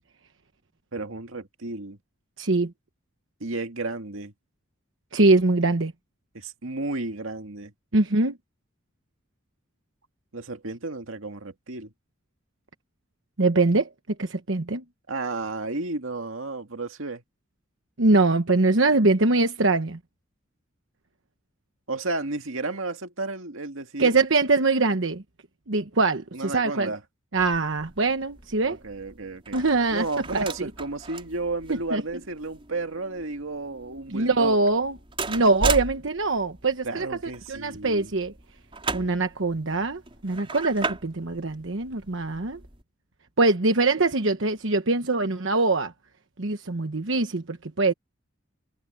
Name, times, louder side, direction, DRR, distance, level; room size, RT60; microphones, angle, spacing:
voice 1, 0.9-2.0 3.4-4.3 6.3-7.7 10.3-11.9 15.1-17.2 21.9-24.2 26.3-27.0 28.6-29.6 29.9-34.6 36.8-38.1, right 3 dB, 90° right, 2.0 m, -32 dB
voice 2, 2.4-2.7 5.1-5.9 7.9-8.4 13.4-13.9 14.2-14.8 18.0-20.0 24.0-25.2 25.7-26.9 27.3-28.8 29.5-30.0 30.3-30.7 31.7-32.0 34.1-35.0 35.3-37.1 37.5-38.3 38.9-42.6 43.4-45.9 46.4-47.9, right 3 dB, 70° right, 1.1 m, -23 dB
sound 1, 27.4-42.8, right 3 dB, 25° right, 5.6 m, -37 dB
head